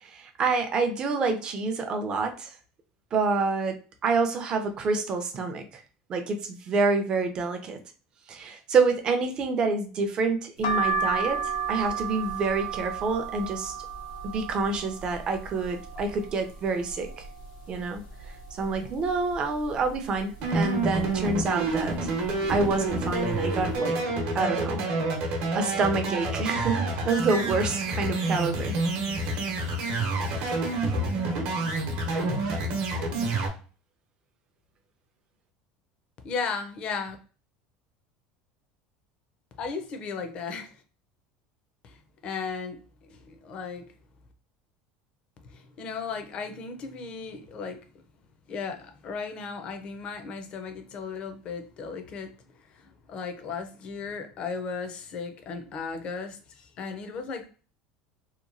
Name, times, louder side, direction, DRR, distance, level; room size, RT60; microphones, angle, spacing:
voice 1, 0.0-2.5 3.1-3.8 4.0-5.8 6.1-7.8 8.3-13.7 14.2-17.1 17.7-21.9 22.5-24.0 24.3-24.8 25.5-28.8, right 4 dB, 30° right, 6 dB, 0.5 m, -27 dB
sound 1, 10.6-16.3 16.8-17.5 17.9-18.0 18.2-19.3 19.8-20.2 20.9-21.3 22.1-22.3 22.6-22.8, right 5 dB, 80° left, 0.6 m, -32 dB
sound 2, 20.4-33.5, right 2 dB, 60° right, 0.9 m, -28 dB
voice 2, 36.2-37.2 39.6-40.7 41.8-42.0 42.2-42.8 43.1-43.9 45.4-47.8 48.5-52.3 52.7-57.4, left 5 dB, 35° left, 6 dB, 0.5 m, -35 dB
2.9 x 2.2 x 2.5 m, 0.37 s
cardioid pair, 155°, 3 cm